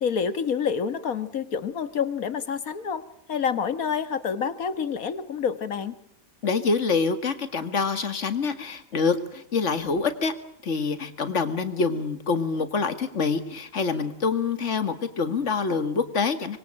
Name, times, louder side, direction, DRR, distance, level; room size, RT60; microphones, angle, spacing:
voice 1, 0.0-3.0 3.3-6.0, left 6 dB, 90° left, 12 dB, 1.9 m, -28 dB
voice 2, 6.4-10.3 10.6-16.6, left 4 dB, 60° left, 10 dB, 2.2 m, -26 dB
25.5 x 22.5 x 8.9 m, 0.70 s
omnidirectional pair, 1.4 m